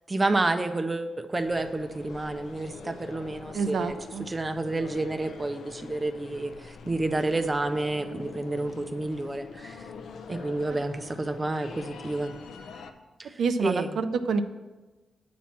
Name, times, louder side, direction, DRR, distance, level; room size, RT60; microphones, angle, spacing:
voice 1, 0.1-9.9 10.3-12.3 13.2-14.0, right 2 dB, 20° right, 8 dB, 0.5 m, -30 dB
sound 1, 1.3-12.9, left 5 dB, 80° left, 0.6 m, -44 dB
voice 2, 3.5-4.2 13.4-14.4, right 5 dB, 75° right, 9 dB, 0.4 m, -27 dB
8.4 x 4.3 x 7.1 m, 1.2 s
wide cardioid pair, 135°, 0 cm